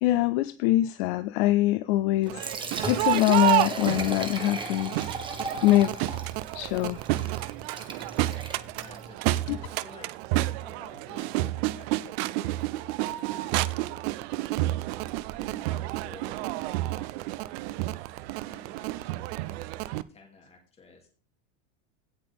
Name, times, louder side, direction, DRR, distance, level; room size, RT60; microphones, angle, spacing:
voice 1, 0.0-2.5 2.9-5.1 5.6-5.9 6.5-7.0 9.5-9.6, left 16 dB, 55° left, 0.5 m, -24 dB
Liquid, 2.2-9.1, right 3 dB, 15° right, 1.3 m, -36 dB
Crowd, 2.3-20.0, right 16 dB, 55° right, 0.5 m, -30 dB
voice 2, 8.7-12.9 13.3-13.9 14.4-15.1 15.4-17.9 18.4-21.1, left 3 dB, 15° left, 2.7 m, -53 dB
16.5 x 5.9 x 3.5 m
supercardioid pair, 160°, 38 cm